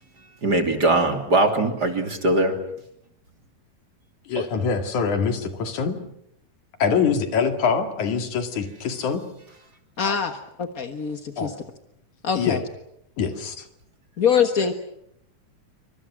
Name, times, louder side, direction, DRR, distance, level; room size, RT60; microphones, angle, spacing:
voice 1, 0.4-2.5 4.3-4.4, right 2 dB, 30° right, 5 dB, 3.1 m, -21 dB
voice 2, 4.3-6.0 6.8-9.2 11.4-11.5 12.4-12.6 13.2-13.7, left 6 dB, 70° left, 7 dB, 3.6 m, -24 dB
voice 3, 10.0-11.5 12.2-12.6 14.2-14.7, left 7 dB, 50° left, 7 dB, 1.1 m, -23 dB
28.0 x 25.0 x 6.2 m, 0.76 s
omnidirectional pair, 3.6 m